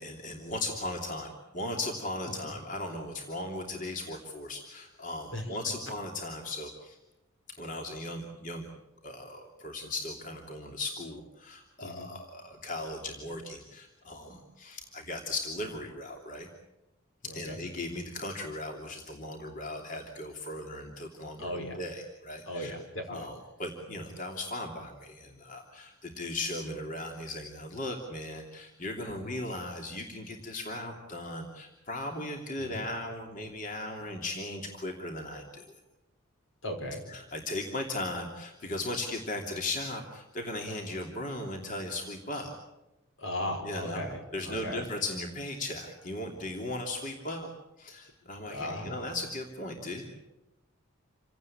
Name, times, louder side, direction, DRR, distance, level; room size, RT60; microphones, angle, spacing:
voice 1, 0.0-7.0 7.6-8.7 9.0-16.5 17.3-22.7 23.1-35.7 37.1-42.5 43.6-44.0 44.3-47.5 47.8-50.2, left 2 dB, 40° left, 2 dB, 3.0 m, -37 dB
voice 2, 17.2-17.6 21.4-21.8 22.5-23.3 29.1-29.3 32.6-32.9 36.6-37.0 43.2-44.9 48.4-49.1, left 1 dB, 70° left, 5 dB, 5.6 m, -37 dB
28.0 x 17.5 x 8.8 m, 0.97 s
head